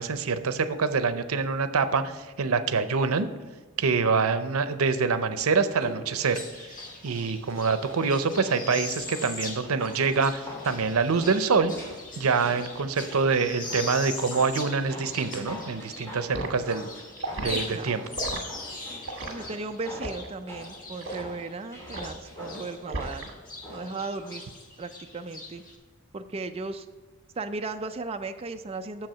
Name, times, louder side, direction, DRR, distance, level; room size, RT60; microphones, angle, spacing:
voice 1, 0.0-3.3 3.8-6.7 7.0-11.7 12.2-16.9 17.4-18.0, right 4 dB, 85° right, 11 dB, 0.6 m, -25 dB
sound 1, 5.7-24.5 24.8-24.9, left 1 dB, 15° left, 2.9 m, -45 dB
sound 2, 6.2-16.4 16.7-22.8 23.0-25.8, left 2 dB, 40° left, 1.5 m, -41 dB
Liquid, 16.3-16.6 17.2-17.5 18.1-18.4 19.0-19.3 20.0-20.3 21.0-21.3 21.9-22.2 22.9-23.3 23.6-23.9, right 2 dB, 60° right, 1.3 m, -34 dB
voice 2, 17.4-17.9 19.3-23.3 23.7-24.5 24.8-25.6 26.1-26.9 27.4-29.1, right 3 dB, 30° right, 6 dB, 0.4 m, -36 dB
7.8 x 7.0 x 5.7 m, 1.3 s
head